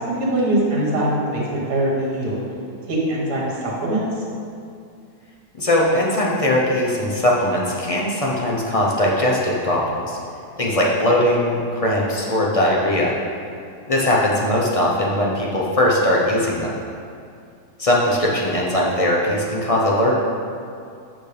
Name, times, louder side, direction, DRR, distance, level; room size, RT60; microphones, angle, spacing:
voice 1, 0.1-2.4 2.9-4.2, right 1 dB, 70° right, -4 dB, 2.1 m, -22 dB
voice 2, 5.6-10.2 10.6-13.1 13.9-16.7 17.8-20.1, left 1 dB, 30° left, -3 dB, 0.6 m, -20 dB
9.1 x 6.1 x 3.4 m, 2.4 s
omnidirectional pair, 1.8 m